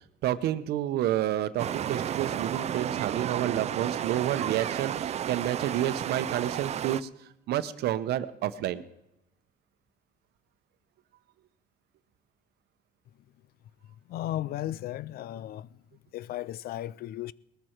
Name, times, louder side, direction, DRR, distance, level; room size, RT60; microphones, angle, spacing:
voice 1, 0.2-7.1 7.5-8.8, right 12 dB, 75° right, 0.9 m, -29 dB
sound 1, 1.6-7.0, right 10 dB, 40° right, 0.4 m, -32 dB
voice 2, 14.1-15.8 16.1-17.3, left 13 dB, 65° left, 0.5 m, -35 dB
19.5 x 14.0 x 4.5 m
cardioid pair, 110°, 17 cm